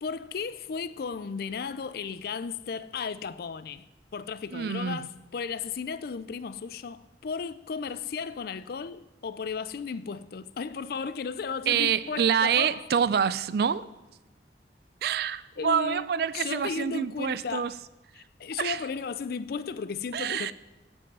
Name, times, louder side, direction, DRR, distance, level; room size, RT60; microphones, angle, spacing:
voice 1, 0.0-3.9 4.1-12.9 15.6-17.8 18.1-20.5, left 5 dB, 55° left, 0.4 m, -35 dB
voice 2, 4.5-5.0 11.7-13.9 15.0-17.7 18.6-18.8 20.1-20.5, right 7 dB, 60° right, 0.3 m, -26 dB
15.0 x 5.4 x 5.4 m
head